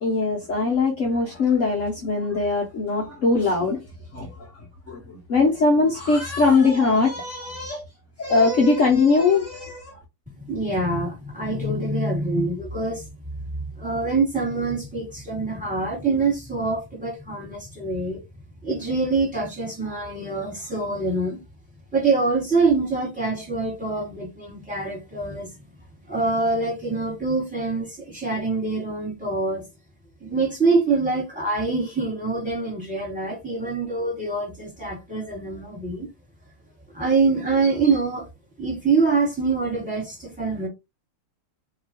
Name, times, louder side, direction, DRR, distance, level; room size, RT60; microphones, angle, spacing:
voice 1, 0.0-3.8 4.1-4.5 4.9-7.8 8.2-10.0, left 3 dB, 75° left, 0.7 m, -21 dB
voice 2, 10.5-13.0 13.8-18.2 18.6-21.4 21.9-25.5 26.1-29.6 30.2-36.1 36.9-38.3 38.6-40.7, right 3 dB, 5° right, 1.5 m, -25 dB
2.9 x 2.8 x 2.7 m
omnidirectional pair, 2.3 m